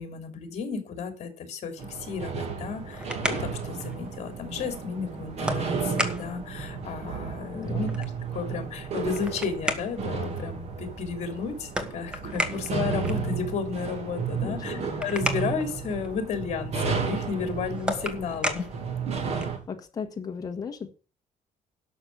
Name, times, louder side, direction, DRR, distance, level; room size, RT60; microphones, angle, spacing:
voice 1, 0.0-7.9 8.3-18.7, left 5 dB, 50° left, 7 dB, 3.2 m, -33 dB
sound 1, 1.8-19.6, right 5 dB, 50° right, 2.8 m, -33 dB
sound 2, 2.6-19.7, equal, 5° right, 1.3 m, -37 dB
voice 2, 7.5-7.9 14.4-14.9 19.7-20.9, left 6 dB, 25° left, 3 dB, 1.5 m, -36 dB
12.0 x 6.3 x 6.8 m, 0.33 s
cardioid pair, 175°, 14 cm